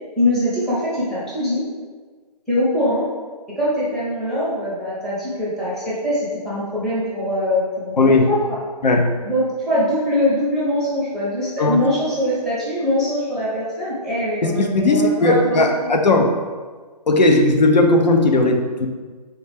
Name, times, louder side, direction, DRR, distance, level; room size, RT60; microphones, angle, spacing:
voice 1, 0.2-1.6 2.5-3.0 3.6-8.0 8.3-8.6 9.2-15.9, left 1 dB, ahead, -10 dB, 0.6 m, -22 dB
voice 2, 8.0-8.3 8.8-9.1 11.6-11.8 14.4-16.3 17.1-18.9, left 2 dB, 85° left, 4 dB, 0.7 m, -16 dB
4.2 x 3.4 x 3.4 m, 1.5 s
hypercardioid pair, 155°, 21 cm